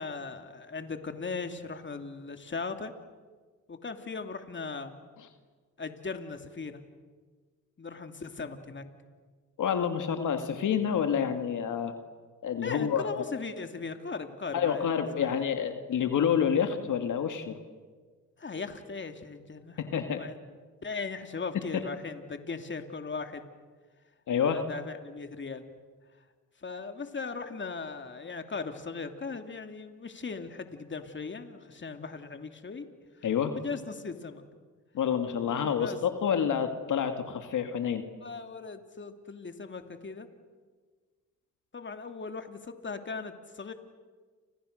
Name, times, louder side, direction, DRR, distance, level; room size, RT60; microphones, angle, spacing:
voice 1, 0.0-2.9 3.7-4.9 5.8-6.8 7.8-8.8 12.6-14.9 15.1-15.3 18.4-20.4 20.8-23.5 24.4-25.7 26.6-32.9 33.2-33.3 33.5-34.4 35.5-36.0 38.2-40.3 41.7-43.7, left 4 dB, 35° left, 7 dB, 2.7 m, -38 dB
voice 2, 9.6-11.9 12.4-13.2 14.5-17.6 19.8-20.2 21.7-21.8 24.3-24.6 33.2-33.5 34.9-38.0, left 8 dB, 70° left, 7 dB, 2.2 m, -28 dB
29.5 x 27.0 x 6.7 m, 1.5 s
supercardioid pair, 65°, 32 cm